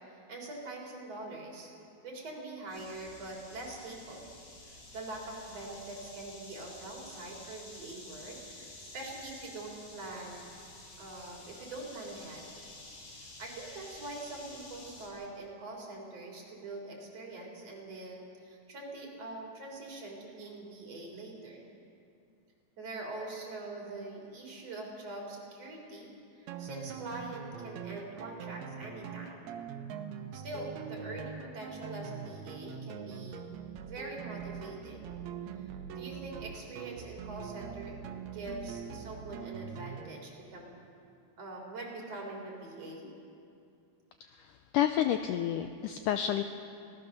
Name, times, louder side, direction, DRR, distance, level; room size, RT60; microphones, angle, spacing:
voice 1, 0.3-1.7 2.0-4.3 4.6-10.5 11.0-12.4 13.2-21.7 22.8-29.6 30.3-33.5 33.8-35.2 35.6-38.0 38.3-40.8 41.4-43.1, right 2 dB, 40° right, -1 dB, 4.9 m, -44 dB
sound 1, 2.7-15.1, left 2 dB, 55° left, 5.4 m, -50 dB
sound 2, 26.5-40.2, right 7 dB, 85° right, 3.0 m, -43 dB
voice 2, 44.4-46.4, left 11 dB, 80° left, 8 dB, 1.9 m, -30 dB
25.5 x 18.5 x 6.7 m, 2.5 s
omnidirectional pair, 4.3 m